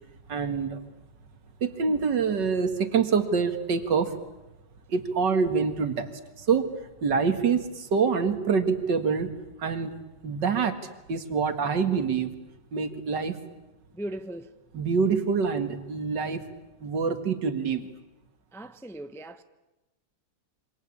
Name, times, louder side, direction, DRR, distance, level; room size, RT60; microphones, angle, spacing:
voice 1, 0.3-0.8 1.6-4.2 4.9-6.7 7.0-9.3 9.6-9.9 10.2-10.8 11.1-12.3 12.7-13.4 14.7-16.4 16.8-17.9, right 5 dB, 70° right, 2.5 m, -26 dB
voice 2, 13.9-14.5 18.5-19.4, right 1 dB, ahead, 0.6 m, -38 dB
27.5 x 25.0 x 8.6 m
omnidirectional pair, 2.0 m